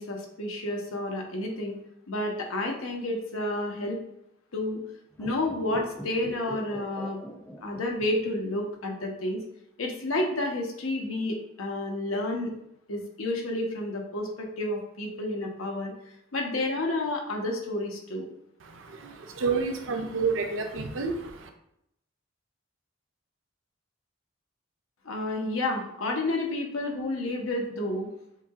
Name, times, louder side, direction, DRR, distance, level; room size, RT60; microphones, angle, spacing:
voice 1, 0.0-1.7 2.1-4.0 4.5-4.8 5.2-7.2 7.6-9.4 9.8-12.5 12.9-15.9 16.3-18.3 25.0-28.1, left 1 dB, 90° left, 1 dB, 0.9 m, -30 dB
sound 1, 5.1-8.5 8.8-8.9, equal, 10° left, 0.4 m, -43 dB
voice 2, 18.6-21.5, right 4 dB, 70° right, 5 dB, 0.5 m, -30 dB
7.0 x 2.7 x 2.4 m, 0.78 s
head